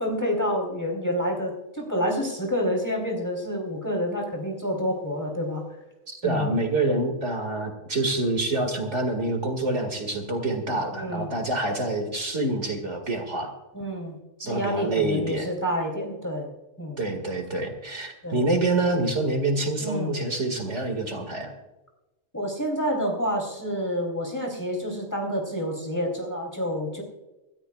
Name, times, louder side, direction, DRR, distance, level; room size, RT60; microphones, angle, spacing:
voice 1, 0.0-5.6 6.2-6.6 10.9-11.3 13.7-14.1 14.4-16.5 16.8-17.1 18.2-18.4 19.8-20.1 22.3-27.0, equal, 15° left, 0 dB, 3.4 m, -28 dB
voice 2, 6.1-13.5 14.4-15.5 17.0-21.5, right 2 dB, 65° right, 4 dB, 2.4 m, -26 dB
26.0 x 13.5 x 2.4 m, 1.0 s
omnidirectional pair, 1.3 m